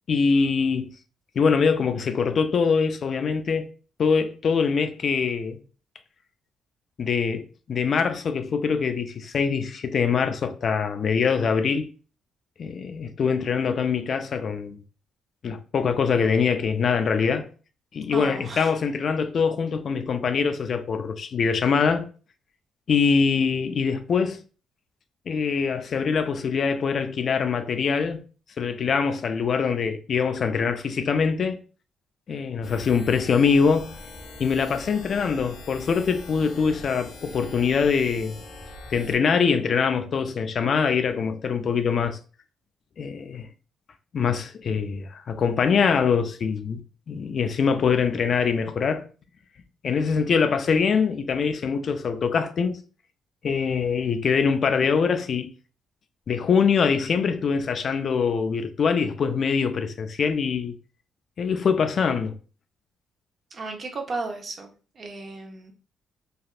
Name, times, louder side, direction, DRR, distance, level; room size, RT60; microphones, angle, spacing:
voice 1, 0.1-0.9 1.4-3.7 4.0-5.6 7.0-11.9 12.6-14.8 15.4-17.5 17.9-22.1 22.9-24.4 25.3-28.2 28.6-31.6 32.3-33.9 34.4-38.4 38.9-42.2 43.0-43.5 44.1-46.8 47.1-49.0 49.8-52.8 53.4-55.5 56.3-60.7 61.4-62.4, left 6 dB, 55° left, 0.4 m, -23 dB
voice 2, 18.1-18.7 63.5-64.7 65.0-65.7, right 3 dB, 45° right, 0.7 m, -34 dB
sound 1, 32.6-39.2, left 2 dB, 75° left, 0.9 m, -42 dB
3.3 x 2.4 x 2.4 m
cardioid pair, 90°, 0 cm